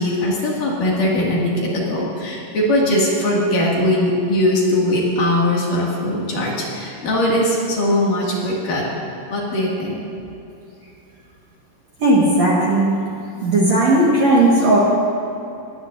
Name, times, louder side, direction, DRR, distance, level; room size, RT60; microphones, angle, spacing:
voice 1, 0.0-8.9 9.3-10.0, left 1 dB, 55° left, -4 dB, 3.7 m, -20 dB
voice 2, 12.0-13.0 13.4-14.8, right 1 dB, 55° right, -5 dB, 2.4 m, -15 dB
21.5 x 18.0 x 2.7 m, 2.8 s
omnidirectional pair, 4.7 m